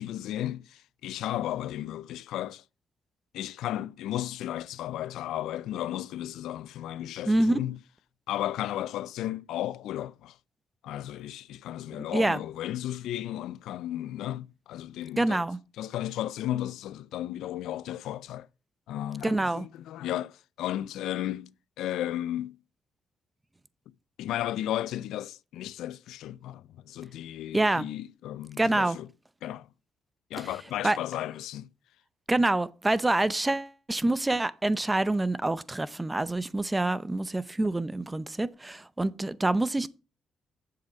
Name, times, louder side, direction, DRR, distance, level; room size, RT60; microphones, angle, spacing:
voice 1, 0.0-2.6 3.3-7.8 8.3-10.4 10.8-15.4 15.8-18.5 18.9-22.6 24.2-29.1 29.4-29.7 30.3-31.7, left 12 dB, 85° left, 0.4 m, -34 dB
voice 2, 7.3-7.6 12.1-12.4 15.2-15.6 19.2-19.7 27.5-27.9 28.6-29.0 30.4-30.5 30.8-31.0 32.3-39.9, right 2 dB, 15° right, 0.7 m, -26 dB
7.8 x 7.1 x 6.0 m
cardioid pair, 90°, 0 cm